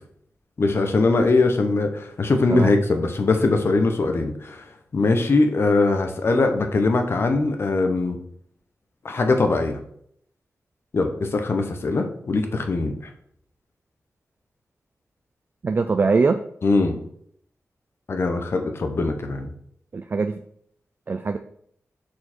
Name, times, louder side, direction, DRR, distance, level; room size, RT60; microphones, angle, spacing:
voice 1, 0.6-4.6 4.9-8.2 9.0-9.8 10.9-12.9 16.6-17.0 18.1-19.5, left 3 dB, 50° left, 5 dB, 0.9 m, -21 dB
voice 2, 15.6-16.4 19.9-20.3 21.1-21.4, right 4 dB, 40° right, 8 dB, 0.3 m, -21 dB
6.4 x 4.7 x 4.4 m, 0.68 s
wide cardioid pair, 155°, 5 cm